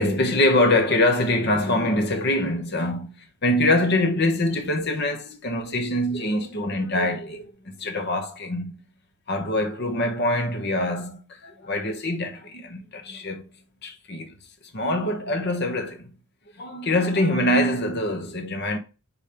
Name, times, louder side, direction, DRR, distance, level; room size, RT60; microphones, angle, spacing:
voice 1, 0.0-7.5 7.8-8.8 9.3-13.5 13.8-14.3 14.7-16.1 16.6-18.8, left 1 dB, 50° left, 1.1 m, -24 dB
5.1 x 4.1 x 5.7 m
head